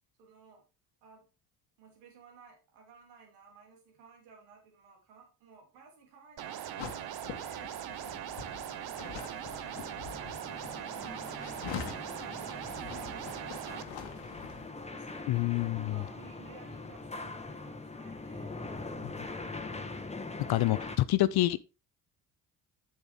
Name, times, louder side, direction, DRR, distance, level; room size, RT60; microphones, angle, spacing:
voice 1, 0.2-0.6 1.0-1.3 1.8-7.7 8.8-9.3 11.0-15.5 15.9-18.6, right 5 dB, 85° right, 3.0 m, -57 dB
sound 1, 6.4-13.8, right 10 dB, 55° right, 0.9 m, -40 dB
sound 2, 6.8-14.7, left 7 dB, 70° left, 1.5 m, -45 dB
sound 3, 7.8-21.0, left 3 dB, 15° left, 1.3 m, -43 dB
voice 2, 15.3-16.0 20.5-21.6, left 16 dB, 55° left, 0.6 m, -27 dB
7.9 x 7.1 x 3.5 m
hypercardioid pair, 55°, 46 cm